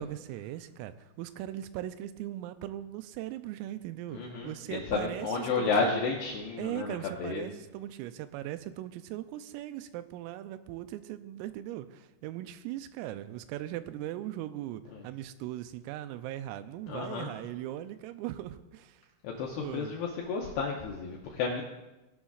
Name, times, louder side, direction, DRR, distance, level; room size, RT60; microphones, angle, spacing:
voice 1, 0.0-4.2 4.4-5.3 5.6-5.9 6.6-19.0 19.3-19.9, right 13 dB, 85° right, 11 dB, 3.2 m, -39 dB
voice 2, 4.1-7.5 14.9-15.0 16.9-17.3 19.2-21.6, left 4 dB, 75° left, -1 dB, 2.4 m, -32 dB
18.5 x 11.5 x 2.4 m, 1.1 s
omnidirectional pair, 6.0 m